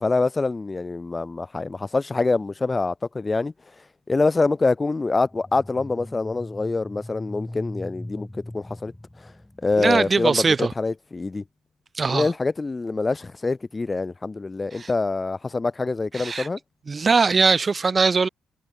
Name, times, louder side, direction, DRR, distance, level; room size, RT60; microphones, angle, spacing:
voice 1, 0.0-3.5 4.1-8.9 9.2-9.3 9.6-11.4 12.1-16.6, left 3 dB, 25° left, 1.3 m, -25 dB
sound 1, 5.3-10.1, left 1 dB, 10° left, 4.0 m, -40 dB
voice 2, 9.8-10.7 12.0-12.3 14.8-14.9 16.1-16.5 16.9-18.3, right 4 dB, 35° right, 1.6 m, -20 dB
cardioid pair, 90°, 0 cm